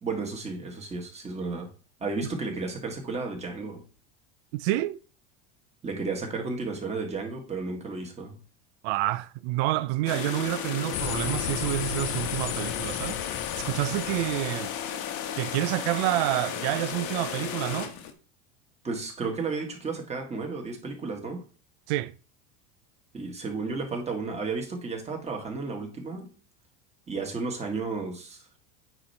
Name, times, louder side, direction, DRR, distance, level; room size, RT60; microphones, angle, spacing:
voice 1, 0.0-1.7 2.0-3.8 5.8-8.4 18.8-21.4 23.1-26.3 27.1-28.6, right 4 dB, 20° right, 1.6 m, -33 dB
voice 2, 4.5-5.0 8.8-13.3 13.6-14.7 15.4-17.9 21.9-22.1, right 17 dB, 65° right, 0.5 m, -28 dB
sound 1, 10.1-18.1, left 8 dB, 55° left, 1.1 m, -34 dB
sound 2, 10.9-14.8, left 11 dB, 35° left, 0.4 m, -35 dB
9.0 x 3.0 x 4.2 m
supercardioid pair, 130°, 36 cm